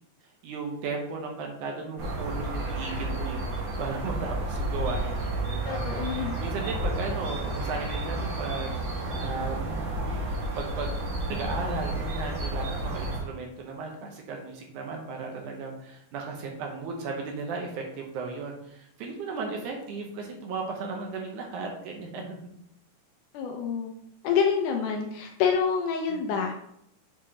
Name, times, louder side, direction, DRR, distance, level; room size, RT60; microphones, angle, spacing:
voice 1, 0.4-8.7 9.0-9.8 10.6-10.9 11.3-22.2 26.1-26.3, right 4 dB, 75° right, 1 dB, 2.2 m, -36 dB
sound 1, 2.0-13.2, right 1 dB, 55° right, 2.5 m, -31 dB
voice 2, 5.7-6.3 23.3-23.9 24.2-26.5, left 6 dB, 80° left, 3 dB, 1.9 m, -27 dB
7.2 x 4.8 x 2.8 m, 0.75 s
omnidirectional pair, 3.9 m